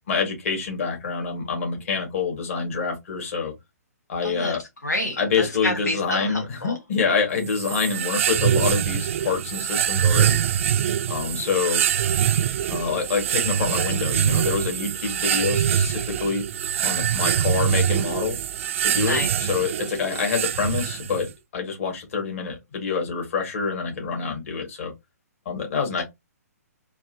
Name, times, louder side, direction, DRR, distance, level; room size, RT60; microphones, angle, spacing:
voice 1, 0.1-3.5 4.1-4.6 5.2-10.4 11.1-11.8 12.7-16.5 16.8-18.4 18.8-21.3 21.5-24.9 25.5-26.0, left 5 dB, 50° left, 2.0 m, -26 dB
voice 2, 4.2-4.6 4.8-6.8 19.0-19.3 25.9-26.0, left 1 dB, 85° left, 1.2 m, -28 dB
sound 1, 7.5-21.3, right 9 dB, 50° right, 0.4 m, -24 dB
4.5 x 2.7 x 2.9 m
figure-of-eight pair, 130°, 9 cm